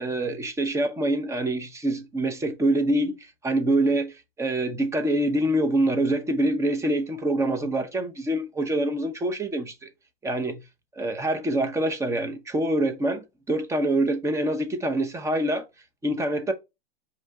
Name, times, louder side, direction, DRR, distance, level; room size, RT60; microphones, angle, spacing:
voice 1, 0.0-9.7 10.2-10.6 10.9-15.6 16.0-16.5, right 1 dB, 10° right, 0.7 m, -25 dB
4.9 x 2.8 x 3.3 m
hypercardioid pair, 120°, 31 cm